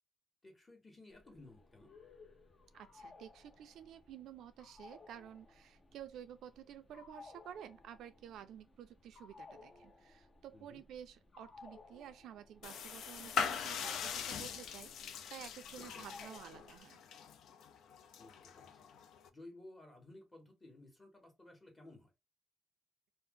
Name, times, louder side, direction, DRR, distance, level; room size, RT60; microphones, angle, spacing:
voice 1, 0.4-1.9 10.5-10.8 18.2-18.7 19.3-22.1, left 2 dB, 20° left, 1.3 m, -56 dB
sound 1, 1.1-16.8, left 3 dB, 40° left, 0.7 m, -59 dB
voice 2, 2.7-17.0, right 9 dB, 80° right, 0.4 m, -52 dB
sound 2, 12.6-19.3, left 6 dB, 75° left, 0.4 m, -42 dB
2.6 x 2.0 x 3.6 m
cardioid pair, 90°, 0 cm